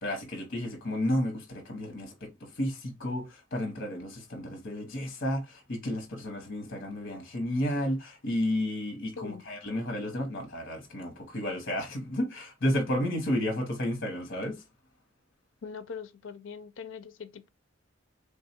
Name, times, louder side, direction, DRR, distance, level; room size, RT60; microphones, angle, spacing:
voice 1, 0.0-14.6, left 1 dB, 50° left, 1.0 m, -32 dB
voice 2, 15.6-17.5, left 6 dB, 70° left, 0.5 m, -42 dB
3.4 x 2.3 x 4.3 m
head